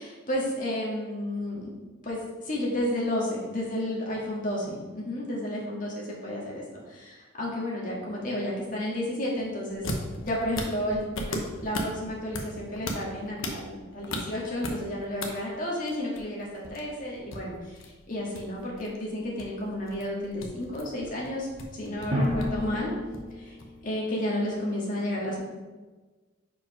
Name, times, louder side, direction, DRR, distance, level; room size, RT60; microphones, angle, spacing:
voice 1, 0.0-1.7 2.0-9.8 10.2-22.9 23.4-23.6 23.8-25.5, left 1 dB, 40° left, -4 dB, 1.7 m, -32 dB
sound 1, 9.7-15.3 15.5-23.8, left 1 dB, 75° left, 0.9 m, -37 dB
Drum, 22.1-23.9, left 1 dB, 35° right, 1.6 m, -30 dB
5.2 x 4.9 x 5.0 m, 1.3 s
head